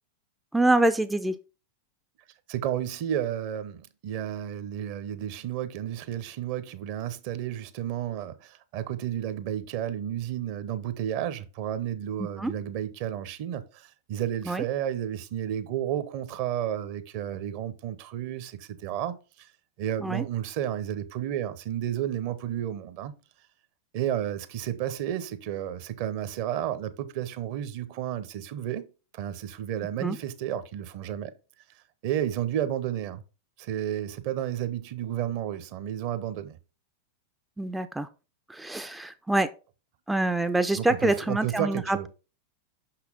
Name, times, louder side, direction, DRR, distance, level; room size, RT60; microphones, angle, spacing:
voice 1, 0.5-1.3 12.4-12.5 14.5-14.6 20.0-20.3 30.0-30.2 37.6-38.1 38.5-39.5 40.1-42.1, right 2 dB, 5° right, 0.4 m, -25 dB
voice 2, 2.5-19.5 19.8-23.1 23.9-28.9 29.1-31.3 32.0-33.2 33.6-36.6 40.8-42.1, right 11 dB, 45° right, 0.7 m, -32 dB
6.0 x 5.8 x 3.7 m
figure-of-eight pair, 90°, 0 cm